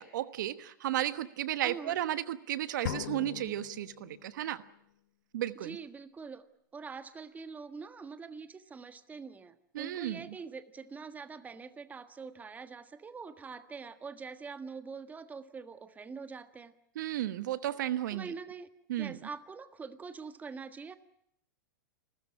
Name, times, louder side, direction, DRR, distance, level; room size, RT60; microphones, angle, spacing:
voice 1, 0.0-4.6 5.3-5.8 9.7-10.3 16.9-18.3 18.9-19.2, right 13 dB, 70° right, 13 dB, 1.2 m, -34 dB
voice 2, 1.6-2.0 5.5-6.4 6.7-16.7 18.1-18.7 19.0-21.0, right 5 dB, 15° right, 10 dB, 1.5 m, -44 dB
sound 1, 2.9-4.5, left 13 dB, 70° left, 1.0 m, -40 dB
30.0 x 14.0 x 9.9 m, 0.76 s
hypercardioid pair, 120°, 11 cm